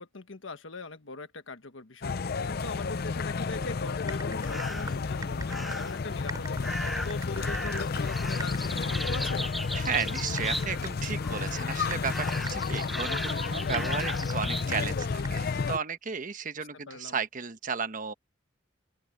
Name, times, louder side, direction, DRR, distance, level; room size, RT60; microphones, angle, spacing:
voice 1, 0.0-9.4 16.9-17.2, left 3 dB, 90° left, 1.5 m, -41 dB
sound 1, 2.0-15.8, left 4 dB, 55° left, 0.5 m, -31 dB
Typing, 3.9-15.8, right 2 dB, 20° right, 5.7 m, -45 dB
sound 2, 4.4-5.0 5.5-6.0 6.6-10.9 11.2-11.7 12.0-14.7, equal, ahead, 1.0 m, -37 dB
voice 2, 9.7-18.1, right 5 dB, 45° right, 1.1 m, -34 dB
open air
head